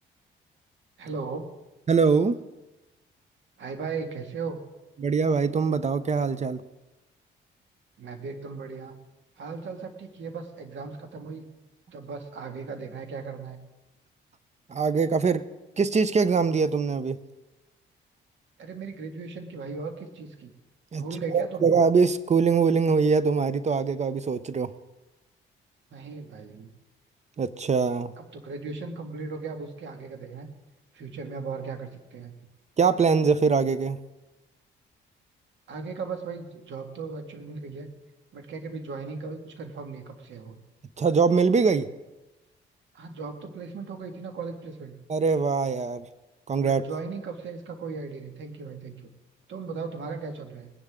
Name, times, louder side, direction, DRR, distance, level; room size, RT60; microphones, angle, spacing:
voice 1, 1.0-1.5 3.6-4.6 8.0-8.9 9.4-11.4 11.9-13.6 18.6-20.5 21.0-21.7 25.9-26.7 28.2-30.5 30.9-32.3 35.7-37.9 38.3-40.6 42.9-44.9 46.6-49.1 49.5-50.7, right 4 dB, 70° right, 5 dB, 2.0 m, -37 dB
voice 2, 1.9-2.4 5.0-6.6 14.7-15.4 15.8-17.2 20.9-21.0 21.3-24.7 27.4-28.1 32.8-34.0 41.0-41.9 45.1-46.0 46.5-46.8, right 5 dB, 35° right, 14 dB, 0.7 m, -23 dB
20.0 x 10.5 x 3.7 m, 1.0 s
cardioid pair, 90°, 20 cm